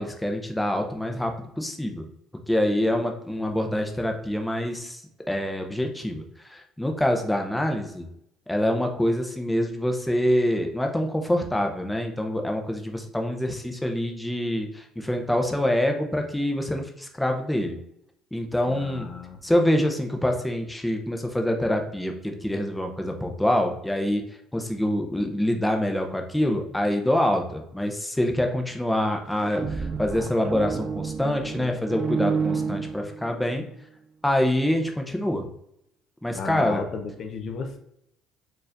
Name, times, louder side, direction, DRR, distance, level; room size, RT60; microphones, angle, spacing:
voice 1, 0.0-2.0 2.5-5.0 5.3-8.1 8.5-17.8 18.3-19.1 19.4-24.2 24.5-33.6 34.2-35.5 36.2-36.8, left 1 dB, 5° left, 3 dB, 0.7 m, -25 dB
voice 2, 18.7-19.4 32.2-32.9 36.3-37.8, left 5 dB, 55° left, 5 dB, 0.6 m, -35 dB
sound 1, 29.3-33.5, right 5 dB, 45° right, 0.6 m, -30 dB
4.6 x 3.2 x 2.5 m, 0.77 s
supercardioid pair, 80°, 0 cm